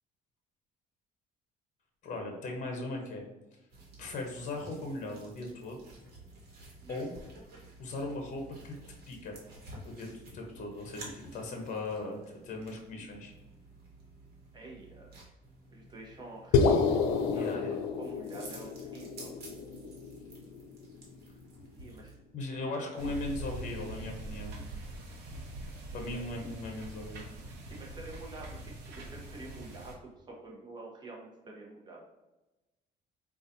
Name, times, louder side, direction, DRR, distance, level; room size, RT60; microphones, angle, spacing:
voice 1, 2.0-3.2 4.0-5.8 6.9-7.1 7.8-8.7 9.1-9.4 9.8-12.2 12.4-13.3 17.3-17.8 22.3-24.5 25.9-27.3, left 2 dB, 50° left, 2 dB, 0.8 m, -38 dB
sound 1, 3.7-22.2, right 2 dB, 65° right, 1.1 m, -52 dB
voice 2, 14.5-15.2 15.7-19.4 21.7-22.1 22.7-23.1 25.9-26.2 27.7-32.0, right 2 dB, 25° right, -2 dB, 0.9 m, -48 dB
sound 2, 16.5-20.9, left 5 dB, 85° left, 0.4 m, -29 dB
sound 3, 23.0-29.9, right 2 dB, 80° right, 0.8 m, -43 dB
4.0 x 2.4 x 2.6 m, 1.1 s
cardioid pair, 110°, 17 cm